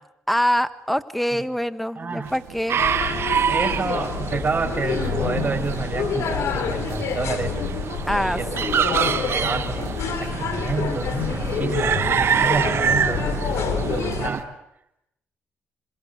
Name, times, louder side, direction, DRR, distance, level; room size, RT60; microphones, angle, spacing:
voice 1, 0.3-2.8 8.1-8.8, equal, ahead, 12 dB, 1.6 m, -25 dB
voice 2, 2.0-2.3 3.5-7.6 8.2-8.5 8.8-9.9 10.2-13.4 13.7-14.5, right 4 dB, 35° right, 7 dB, 5.3 m, -29 dB
sound 1, 2.2-14.5, right 11 dB, 90° right, 1.7 m, -43 dB
sound 2, 2.7-14.4, right 7 dB, 60° right, 1.4 m, -26 dB
sound 3, 2.8-14.3, left 7 dB, 75° left, 3.5 m, -28 dB
27.0 x 26.0 x 8.2 m, 0.81 s
cardioid pair, 75°, 5 cm